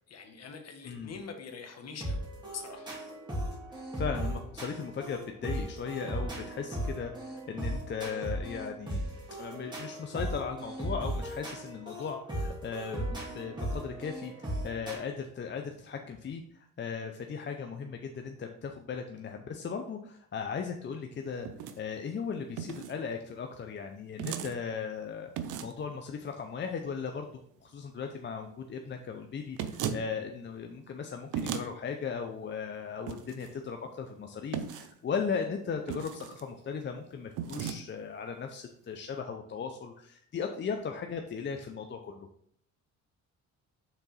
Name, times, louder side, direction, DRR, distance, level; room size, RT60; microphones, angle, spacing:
voice 1, 0.1-2.2 2.5-2.9 11.9-12.1, left 5 dB, 55° left, 5 dB, 1.2 m, -44 dB
sound 1, 2.0-15.0, right 1 dB, 15° right, 2.2 m, -37 dB
voice 2, 4.0-9.0 9.4-21.5 21.8-25.3 25.6-27.3 27.6-42.3, left 6 dB, 40° left, 5 dB, 0.6 m, -37 dB
sound 2, 21.4-21.8 22.6-23.0 24.2-24.5 25.4-25.8 29.6-30.0 31.3-31.7 33.1-33.5 34.5-34.9 35.9-36.4 37.4-37.8, right 8 dB, 85° right, 0.6 m, -36 dB
6.1 x 3.9 x 4.0 m, 0.66 s
cardioid pair, 90°, 30 cm